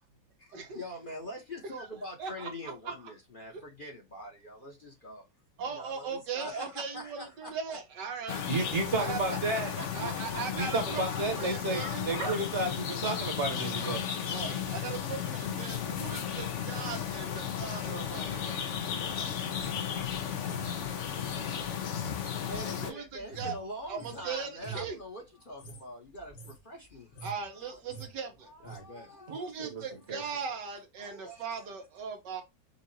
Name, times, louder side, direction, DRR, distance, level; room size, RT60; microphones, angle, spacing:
voice 1, 0.4-5.2 5.7-7.8 9.2-11.0 22.4-27.3 27.6-27.8 28.4-29.5 31.0-31.7, equal, 35° left, 1.1 m, -44 dB
voice 2, 2.2-2.5 5.6-8.4 9.0-9.4 9.9-11.1 11.4-12.4 14.3-19.3 22.8-23.1 23.4-23.5 23.9-25.0 27.2-28.5 29.3-32.4, right 5 dB, 75° right, 1.7 m, -39 dB
sound 1, 8.3-22.9, left 8 dB, 55° left, 0.9 m, -34 dB
voice 3, 8.5-9.7 10.5-14.0 29.4-29.8 30.1-30.2, right 3 dB, 45° right, 1.4 m, -32 dB
sound 2, 19.5-24.2 24.6-25.0 25.5-25.8 26.1-26.6 26.9-27.5 27.7-28.1 28.6-28.8, right 1 dB, 85° left, 1.9 m, -45 dB
5.7 x 2.5 x 2.7 m
omnidirectional pair, 1.9 m